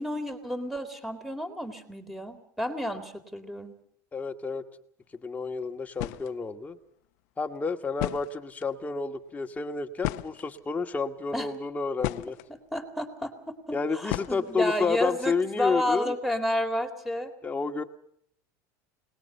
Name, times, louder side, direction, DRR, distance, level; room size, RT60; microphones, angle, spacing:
voice 1, 0.0-3.7 11.3-11.5 12.7-17.3, left 1 dB, ahead, 8 dB, 3.7 m, -31 dB
voice 2, 4.1-4.6 5.1-6.8 7.4-12.4 13.7-16.1 17.4-17.8, left 4 dB, 15° left, 5 dB, 2.0 m, -30 dB
sound 1, 5.6-5.7 5.9-6.3 7.6-7.7 7.9-8.7 10.0-10.8 11.5-12.5 14.1-14.7, left 20 dB, 70° left, 0.9 m, -34 dB
29.0 x 20.5 x 5.7 m, 0.66 s
supercardioid pair, 115°, 9 cm